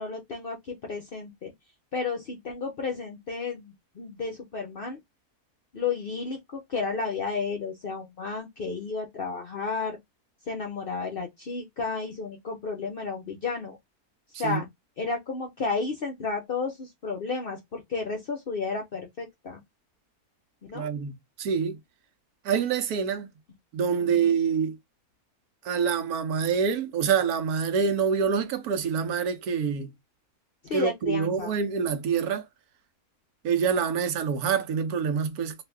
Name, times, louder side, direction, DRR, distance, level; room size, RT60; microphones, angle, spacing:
voice 1, 0.0-1.5 1.9-5.0 5.7-10.0 10.5-13.8 14.4-14.7 15.0-19.6 20.6-20.9 24.0-24.4 30.6-31.5, left 4 dB, 60° left, 0.6 m, -32 dB
voice 2, 20.7-21.8 22.4-23.3 23.7-24.8 25.6-29.9 30.7-32.5 33.4-35.6, right 6 dB, 80° right, 1.2 m, -26 dB
2.7 x 2.5 x 3.3 m
omnidirectional pair, 1.6 m